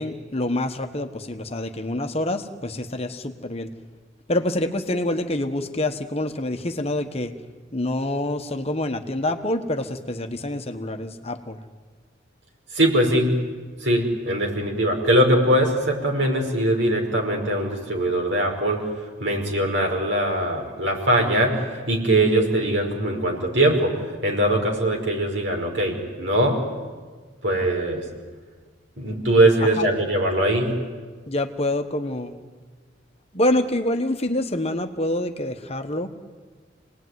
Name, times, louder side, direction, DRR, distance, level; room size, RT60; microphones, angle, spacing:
voice 1, 0.0-3.7 4.3-7.3 7.7-11.6 29.6-29.9 31.3-32.3 33.3-36.1, left 1 dB, 35° left, 7 dB, 1.3 m, -26 dB
voice 2, 12.7-13.3 13.8-18.8 19.2-21.6 21.9-23.9 24.2-26.6 27.4-28.0 29.0-30.7, right 1 dB, 70° right, 1 dB, 5.6 m, -21 dB
27.5 x 19.5 x 9.6 m, 1.5 s
head